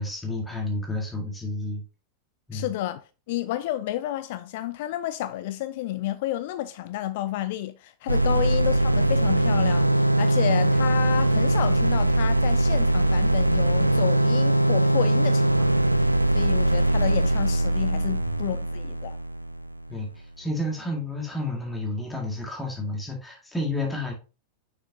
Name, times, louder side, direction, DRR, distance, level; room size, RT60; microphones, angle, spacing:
voice 1, 0.0-1.8 2.5-2.7 18.2-18.4 19.9-24.1, left 1 dB, 5° left, 1.9 m, -31 dB
voice 2, 2.5-3.0 3.3-15.7 16.3-19.2, left 13 dB, 50° left, 0.4 m, -30 dB
sound 1, 8.1-19.9, right 1 dB, 90° right, 0.4 m, -21 dB
6.5 x 6.0 x 2.7 m
figure-of-eight pair, 90°, 0 cm